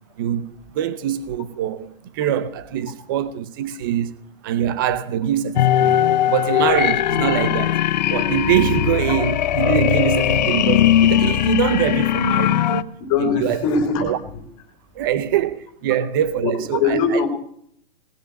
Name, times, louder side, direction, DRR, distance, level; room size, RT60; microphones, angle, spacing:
voice 1, 0.2-4.2 4.4-6.0 6.3-7.8 8.1-12.9 13.2-13.6 14.0-14.2 14.9-17.2, right 10 dB, 25° right, 0.6 m, -23 dB
sound 1, 5.6-12.8, left 11 dB, 50° left, 0.7 m, -19 dB
voice 2, 13.0-14.1 16.4-17.3, left 5 dB, 20° left, 3.0 m, -21 dB
19.0 x 8.0 x 8.5 m
hypercardioid pair, 175°, 29 cm